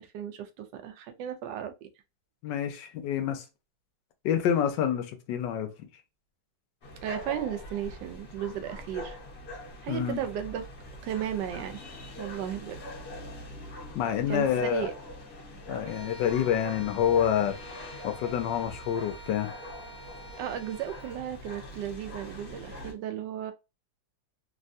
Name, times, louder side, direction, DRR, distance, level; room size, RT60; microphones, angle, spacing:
voice 1, 0.0-1.9 7.0-9.2 9.8-10.7 11.0-11.7 12.2-13.0 14.3-14.9 20.4-23.5, right 10 dB, 75° right, 1.1 m, -35 dB
voice 2, 2.4-3.4 4.2-5.7 9.9-10.2 13.9-14.9 15.7-17.6 18.0-19.5, left 9 dB, 75° left, 1.1 m, -27 dB
sound 1, 6.8-22.9, left 1 dB, 45° left, 0.9 m, -43 dB
Bowed string instrument, 15.8-21.2, right 2 dB, 60° right, 1.5 m, -48 dB
3.4 x 2.2 x 2.5 m
omnidirectional pair, 2.2 m